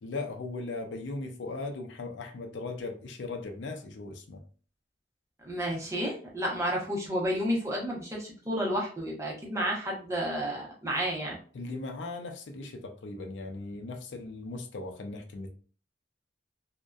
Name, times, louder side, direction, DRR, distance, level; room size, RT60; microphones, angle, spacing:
voice 1, 0.0-4.4 11.5-15.5, left 3 dB, 75° left, 4 dB, 0.4 m, -38 dB
voice 2, 5.4-11.4, equal, 15° right, -3 dB, 0.7 m, -31 dB
2.6 x 2.1 x 2.2 m, 0.40 s
head